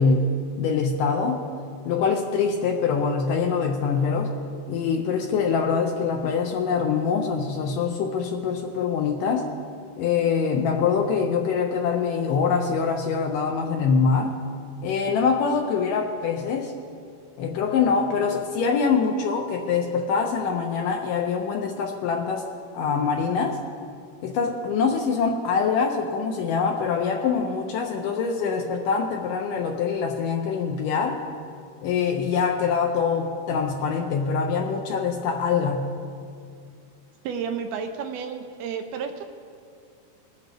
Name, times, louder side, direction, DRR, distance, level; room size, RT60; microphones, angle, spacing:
voice 1, 0.0-1.5 1.9-4.3 4.7-9.5 10.0-14.4 14.8-16.7 17.4-23.6 24.2-31.2 31.8-35.9, left 5 dB, 85° left, 2 dB, 1.9 m, -24 dB
voice 2, 37.2-39.2, right 6 dB, 80° right, 6 dB, 2.5 m, -31 dB
20.0 x 8.3 x 3.4 m, 2.3 s
omnidirectional pair, 4.6 m